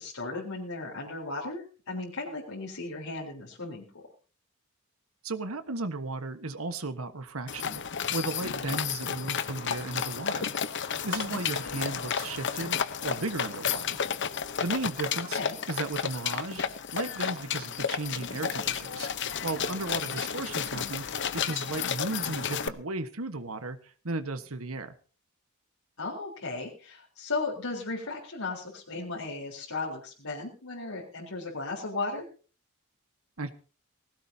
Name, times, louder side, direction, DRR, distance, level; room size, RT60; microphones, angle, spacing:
voice 1, 0.0-4.1 8.7-8.8 11.3-11.4 15.3-15.6 26.0-32.3, left 3 dB, 80° left, -3 dB, 4.1 m, -36 dB
voice 2, 5.2-7.8 8.1-10.5 10.8-14.0 14.6-15.4 15.7-19.1 19.4-24.9 33.4-33.5, right 3 dB, 70° right, 9 dB, 1.4 m, -35 dB
sound 1, 7.5-22.7, left 7 dB, 55° left, 0.9 m, -32 dB
19.5 x 16.5 x 2.8 m, 0.38 s
head